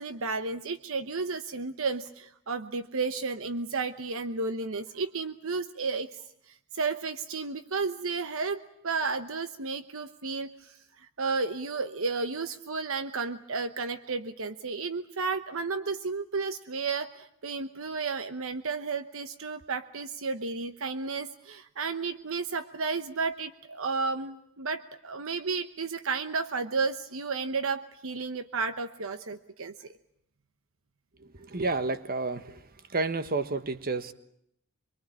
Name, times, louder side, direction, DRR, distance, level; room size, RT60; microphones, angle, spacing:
voice 1, 0.0-29.9, right 4 dB, 65° right, 10 dB, 1.0 m, -32 dB
voice 2, 31.2-32.6 32.9-34.1, right 3 dB, 45° right, 11 dB, 1.4 m, -30 dB
25.0 x 23.5 x 8.6 m, 0.72 s
head